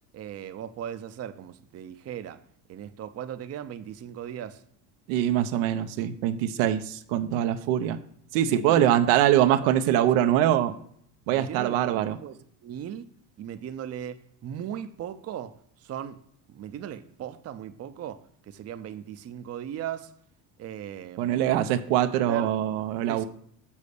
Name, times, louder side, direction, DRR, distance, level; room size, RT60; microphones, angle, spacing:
voice 1, 0.1-2.4 2.7-4.6 8.5-8.9 9.4-9.7 11.3-13.0 13.4-15.5 15.8-16.2 16.5-18.2 18.5-20.1 20.6-21.5 22.3-22.5 23.1-23.2, right 10 dB, 35° right, 10 dB, 0.6 m, -38 dB
voice 2, 5.1-8.0 8.3-10.7 11.3-12.2 21.2-23.2, right 11 dB, 80° right, 8 dB, 0.8 m, -23 dB
7.1 x 4.1 x 6.6 m, 0.65 s
supercardioid pair, 90°, 45 cm